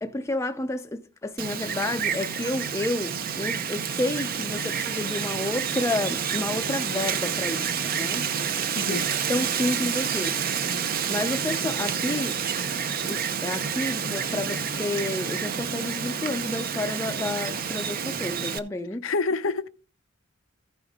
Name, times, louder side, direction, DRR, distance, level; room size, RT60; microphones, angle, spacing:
voice 1, 0.0-8.3 8.9-9.0 9.3-10.4 11.1-12.4 13.0-19.1, left 2 dB, 15° left, 0.4 m, -30 dB
Wind, 1.4-18.6, right 7 dB, 45° right, 0.6 m, -29 dB
voice 2, 19.0-19.7, left 3 dB, 80° left, 0.6 m, -27 dB
14.5 x 5.5 x 3.6 m
head